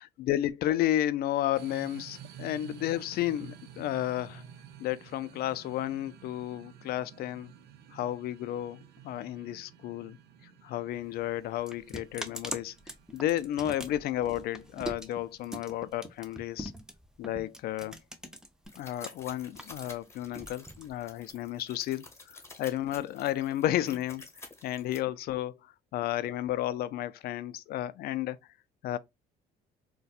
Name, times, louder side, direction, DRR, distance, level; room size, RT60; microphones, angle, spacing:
voice 1, 0.0-4.4 4.8-7.5 7.9-10.2 10.6-12.7 13.1-16.7 17.2-18.0 18.8-24.2 24.6-25.6 25.9-28.4 28.8-29.0, left 13 dB, 65° left, 0.4 m, -32 dB
sound 1, 1.5-16.6, right 9 dB, 80° right, 0.6 m, -52 dB
sound 2, 10.9-19.1 19.4-21.3, right 1 dB, 5° right, 0.5 m, -42 dB
sound 3, 18.6-25.0, left 3 dB, 15° left, 1.0 m, -50 dB
4.1 x 2.2 x 2.4 m
cardioid pair, 110°, 17 cm